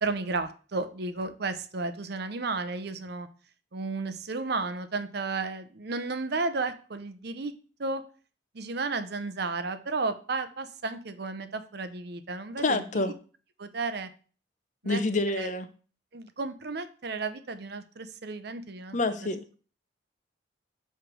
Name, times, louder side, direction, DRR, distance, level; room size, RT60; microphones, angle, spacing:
voice 1, 0.0-3.3 3.7-7.5 7.8-8.0 8.5-13.0 13.6-14.1 14.8-15.0 15.3-15.5 16.1-19.0, right 3 dB, 55° right, 11 dB, 0.7 m, -33 dB
voice 2, 12.6-13.1 14.8-15.7 18.9-19.4, left 2 dB, 40° left, 10 dB, 0.7 m, -27 dB
7.8 x 3.3 x 6.1 m, 0.39 s
head